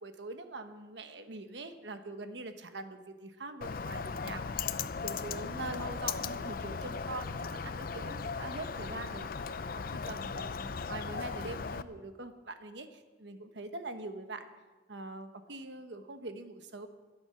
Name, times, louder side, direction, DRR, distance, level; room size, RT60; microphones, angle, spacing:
voice 1, 0.0-4.7 5.0-9.3 9.8-14.5 14.9-16.9, right 2 dB, 70° right, 7 dB, 1.2 m, -43 dB
Bird, 3.6-11.8, left 5 dB, 50° left, 0.5 m, -37 dB
22.5 x 8.0 x 5.9 m, 1.3 s
head